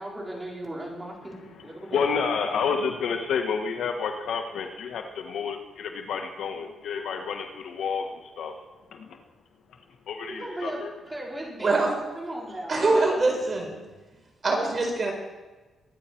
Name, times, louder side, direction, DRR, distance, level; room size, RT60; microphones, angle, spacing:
voice 1, 0.0-2.0 10.3-11.9 12.1-12.7, right 1 dB, 10° right, -3 dB, 4.9 m, -36 dB
voice 2, 1.6-8.5 8.9-9.2 10.1-10.9, left 6 dB, 80° left, 5 dB, 1.6 m, -30 dB
voice 3, 11.6-12.0 12.7-13.9 14.4-15.1, right 3 dB, 35° right, 1 dB, 4.7 m, -24 dB
23.5 x 9.8 x 4.6 m, 1.2 s
cardioid pair, 95°, 0 cm